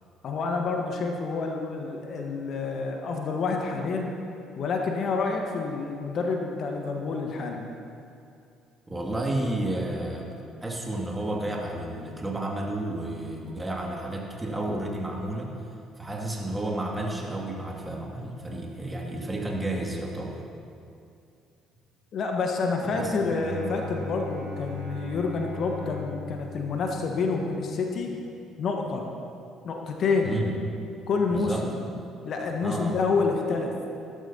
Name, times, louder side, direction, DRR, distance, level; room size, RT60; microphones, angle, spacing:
voice 1, 0.2-4.1 4.6-7.7 22.1-28.2 28.6-29.1 29.6-30.4 31.1-31.8 32.2-34.0, left 4 dB, 50° left, 2 dB, 1.2 m, -28 dB
voice 2, 8.9-15.5 16.0-20.4 22.9-23.1 30.2-30.5 31.3-31.6 32.6-33.0, right 1 dB, 15° right, -1 dB, 2.3 m, -31 dB
Bowed string instrument, 23.3-27.4, left 2 dB, 85° right, 2.1 m, -39 dB
18.0 x 12.5 x 2.8 m, 2.5 s
figure-of-eight pair, 50°, 0 cm